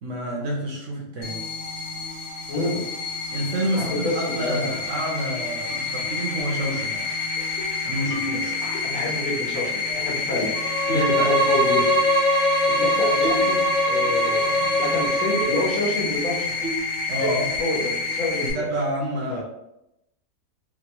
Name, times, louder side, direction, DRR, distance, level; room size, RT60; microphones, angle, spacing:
voice 1, 0.0-1.3 3.3-7.0 7.8-8.5 10.9-11.5 17.1-17.5 18.5-19.4, right 1 dB, 60° right, -2 dB, 0.9 m, -28 dB
sound 1, 1.2-18.5, left 4 dB, 55° left, 0.9 m, -29 dB
voice 2, 2.5-2.8 3.7-4.7 8.3-10.5 10.9-11.9 12.7-16.7 17.6-18.7 19.3-19.4, left 1 dB, 70° left, -3 dB, 1.3 m, -28 dB
sound 2, 5.7-5.8 6.4-6.6 6.9-7.0 7.4-7.7 8.1-8.8 9.9-10.5 10.9-11.2 11.8-12.0 13.0-13.6 13.9-14.6 15.0-15.1 15.4-15.6 16.0-16.1 16.6-16.9 17.2-17.6, right 1 dB, 30° left, 0.8 m, -32 dB
Bowed string instrument, 10.5-15.7, equal, 80° right, 1.4 m, -22 dB
3.6 x 2.2 x 2.9 m, 0.84 s
omnidirectional pair, 1.6 m